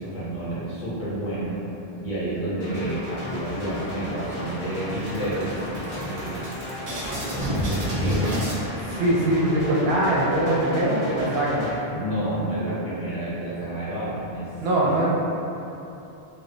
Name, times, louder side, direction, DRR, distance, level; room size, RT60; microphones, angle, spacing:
voice 1, 0.0-1.6 2.0-6.5 7.6-8.3 11.9-14.5 14.8-15.1, right 1 dB, 50° left, -10 dB, 0.9 m, -30 dB
sound 1, 2.6-11.7, left 1 dB, 35° left, 0.4 m, -35 dB
sound 2, 3.3-4.0 4.4-4.5 4.8-8.6, equal, 45° right, 0.7 m, -30 dB
voice 2, 9.0-11.7 14.6-15.1, right 1 dB, 75° right, -5 dB, 0.8 m, -22 dB
2.1 x 2.0 x 3.7 m, 2.9 s
omnidirectional pair, 1.1 m